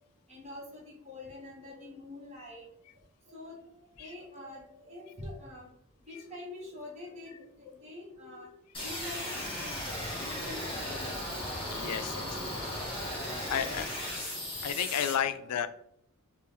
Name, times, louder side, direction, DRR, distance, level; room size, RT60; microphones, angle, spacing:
voice 1, 0.3-2.6 3.3-3.6 4.0-5.7 6.1-8.5 8.8-11.2 12.1-12.6 13.5-13.9 15.4-15.5, left 2 dB, 30° right, -4 dB, 1.5 m, -45 dB
sound 1, 8.7-15.1, left 1 dB, 25° left, 1.5 m, -36 dB
voice 2, 11.7-12.3 13.5-13.9 14.6-15.7, left 9 dB, 90° left, 11 dB, 0.4 m, -31 dB
4.3 x 2.5 x 3.6 m, 0.71 s
head